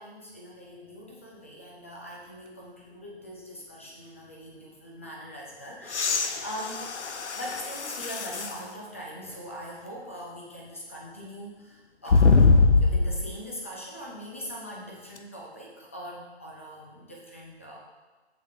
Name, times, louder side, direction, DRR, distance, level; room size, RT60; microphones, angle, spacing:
voice 1, 0.0-7.0 7.3-17.8, equal, 10° left, -3 dB, 0.6 m, -42 dB
sound 1, 5.9-8.6 9.3-9.4 12.1-13.3 15.2-15.3, left 4 dB, 85° left, 0.9 m, -22 dB
11.5 x 8.4 x 2.8 m, 1.3 s
hypercardioid pair, 170°, 34 cm